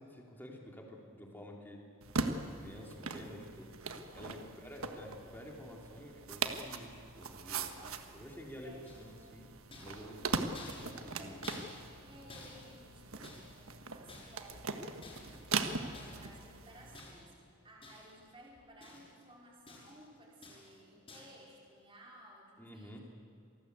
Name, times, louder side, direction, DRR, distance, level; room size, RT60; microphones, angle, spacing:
voice 1, 0.0-1.8 2.4-3.7 4.1-7.8 8.1-9.5 9.8-10.4 11.1-11.4 22.6-23.0, equal, 10° left, 0 dB, 3.2 m, -50 dB
sound 1, 2.0-17.0, right 4 dB, 75° right, 1.5 m, -41 dB
voice 2, 4.1-4.6 7.8-8.3 8.6-9.0 9.9-10.2 11.2-11.4 12.0-17.4 17.6-23.0, equal, 25° right, -3 dB, 4.4 m, -57 dB
sound 2, 8.9-9.3 9.7-12.0 12.3-13.7 14.1-14.6 15.0-15.5 15.9-16.4 16.9-17.4 17.8-18.3 18.5-19.2 19.7-20.1 20.4-20.8 21.1-21.4, left 2 dB, 25° left, 6.3 m, -53 dB
27.0 x 19.0 x 8.3 m, 2.6 s
head